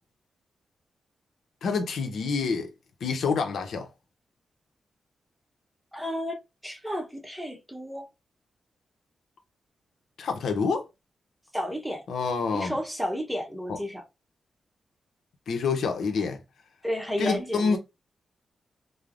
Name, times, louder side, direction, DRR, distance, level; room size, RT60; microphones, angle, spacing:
voice 1, 1.6-2.7 3.0-3.9 10.2-10.8 12.1-12.8 15.5-16.4 17.2-17.8, left 5 dB, 80° left, 0.6 m, -27 dB
voice 2, 5.9-6.4 6.6-8.1 11.5-12.0 12.5-14.0 16.8-17.8, equal, 5° right, 0.8 m, -32 dB
3.1 x 2.0 x 2.4 m
cardioid pair, 80°, 0 cm